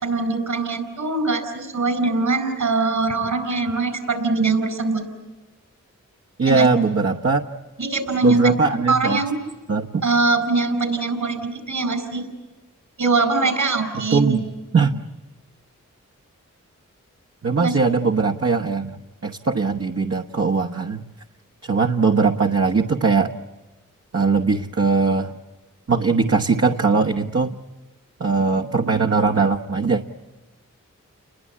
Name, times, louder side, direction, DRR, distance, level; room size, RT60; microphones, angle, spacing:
voice 1, 0.0-5.0 6.5-6.7 7.8-8.4 8.9-9.4 10.0-12.3 13.0-14.4 17.6-17.8, right 3 dB, 70° right, 9 dB, 4.9 m, -22 dB
voice 2, 6.4-7.4 8.2-9.2 9.7-10.0 14.1-14.5 14.7-15.0 17.4-19.0 19.2-21.0 21.6-23.3 24.1-25.3 25.9-27.6 28.2-30.0, right 4 dB, 50° right, 1 dB, 1.2 m, -20 dB
29.5 x 21.5 x 8.5 m, 1.2 s
cardioid pair, 50°, 32 cm